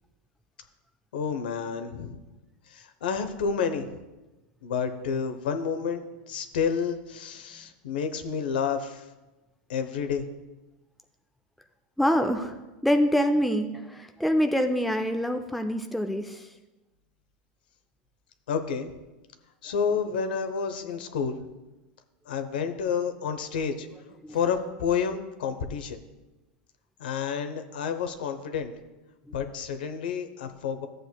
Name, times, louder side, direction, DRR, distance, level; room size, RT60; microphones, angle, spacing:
voice 1, 1.1-2.2 2.7-4.0 4.6-9.1 9.7-10.3 18.5-18.9 19.6-21.4 22.3-23.9 24.3-26.0 27.0-28.7 29.3-30.9, left 6 dB, 90° left, 8 dB, 0.9 m, -30 dB
voice 2, 12.0-12.5 12.8-16.5 24.2-24.4, equal, ahead, 5 dB, 0.4 m, -25 dB
13.5 x 7.8 x 2.3 m, 1.1 s
supercardioid pair, 130°, 5 cm